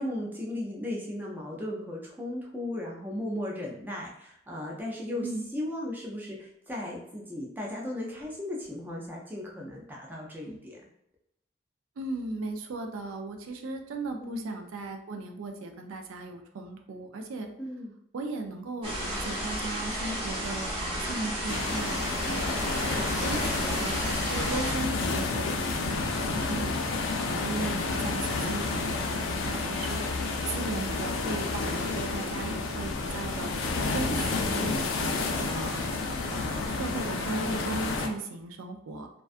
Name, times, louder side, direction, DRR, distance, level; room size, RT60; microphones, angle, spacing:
voice 1, 0.0-5.3 5.5-10.8 14.2-14.5 17.6-17.9 22.2-22.7 26.4-26.8 32.2-32.6, left 1 dB, 10° right, -2 dB, 0.3 m, -36 dB
voice 2, 12.0-17.5 18.1-23.9 24.3-26.8 27.2-30.0 30.5-35.8 36.3-39.1, right 3 dB, 85° right, 4 dB, 0.4 m, -37 dB
sound 1, 18.8-24.8, equal, 25° right, 0.8 m, -33 dB
sound 2, 21.5-38.1, left 3 dB, 75° left, 0.4 m, -30 dB
2.4 x 2.2 x 2.4 m, 0.76 s
head